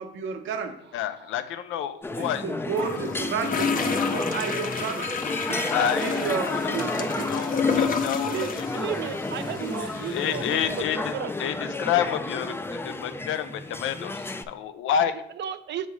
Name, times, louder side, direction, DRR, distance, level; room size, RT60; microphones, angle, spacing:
voice 1, 0.0-0.8 2.2-5.1 5.5-5.7 6.0-7.3 8.3-8.4, right 6 dB, 80° right, 6 dB, 0.9 m, -32 dB
voice 2, 0.9-2.4 5.7-6.2 6.5-6.7 7.3-8.6 10.0-11.1 11.4-12.6 12.8-15.3, left 9 dB, 85° left, 11 dB, 0.5 m, -29 dB
sound 1, 2.0-14.4, left 2 dB, 10° left, 0.4 m, -32 dB
sound 2, 2.8-10.8, left 5 dB, 45° left, 0.7 m, -30 dB
voice 3, 8.3-11.3 15.4-15.9, right 9 dB, 65° right, 11 dB, 0.5 m, -34 dB
7.3 x 5.4 x 3.2 m, 0.73 s
cardioid pair, 90°, 20 cm